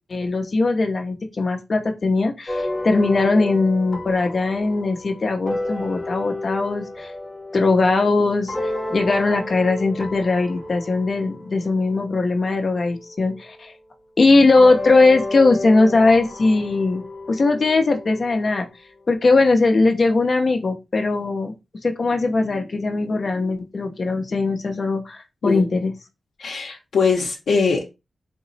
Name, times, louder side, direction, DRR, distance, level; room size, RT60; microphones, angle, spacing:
voice 1, 0.1-7.1 7.5-8.5 8.9-13.7 14.2-17.0 17.3-18.7 19.1-21.5 21.8-25.2 25.4-25.9, left 3 dB, 45° left, 0.7 m, -19 dB
sound 1, 2.5-13.3 14.6-19.0, left 2 dB, 20° left, 1.0 m, -32 dB
voice 2, 26.4-27.8, left 5 dB, 85° left, 0.7 m, -21 dB
3.6 x 2.0 x 3.9 m
wide cardioid pair, 115°, 0 cm